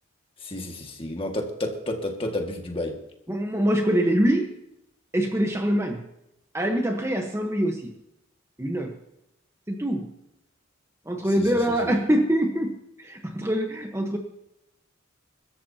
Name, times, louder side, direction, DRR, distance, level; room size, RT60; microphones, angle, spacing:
voice 1, 0.4-2.9 11.4-11.5 11.8-11.9, left 1 dB, 25° left, 3 dB, 1.9 m, -31 dB
voice 2, 3.3-4.5 5.1-6.0 6.5-7.9 8.6-8.9 9.7-10.1 11.1-14.2, equal, 15° right, 3 dB, 1.1 m, -24 dB
24.0 x 13.5 x 2.9 m, 0.84 s
head